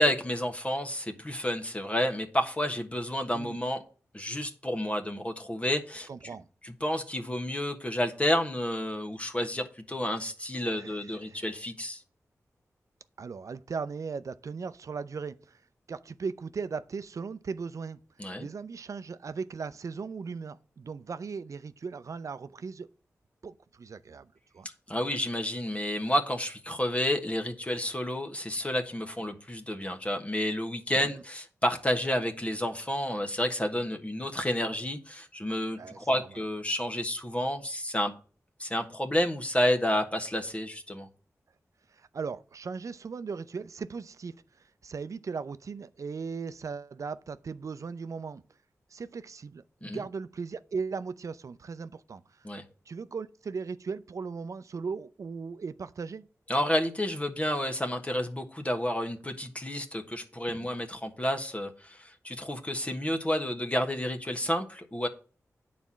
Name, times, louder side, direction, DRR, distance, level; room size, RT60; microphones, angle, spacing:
voice 1, 0.0-3.8 4.1-6.1 6.6-12.0 18.2-18.5 24.9-38.1 38.6-41.1 49.8-50.0 52.4-52.6 56.5-65.1, left 1 dB, 20° left, 1.3 m, -30 dB
voice 2, 3.3-3.6 6.1-6.5 10.8-10.9 11.2-11.5 13.2-15.6 15.9-18.0 18.4-22.9 23.4-24.7 31.0-31.2 35.8-36.3 41.9-44.4 44.8-48.4 48.9-52.5 52.9-56.3 60.5-60.7, right 5 dB, 65° right, 0.6 m, -38 dB
9.2 x 4.3 x 7.4 m
cardioid pair, 60°, 6 cm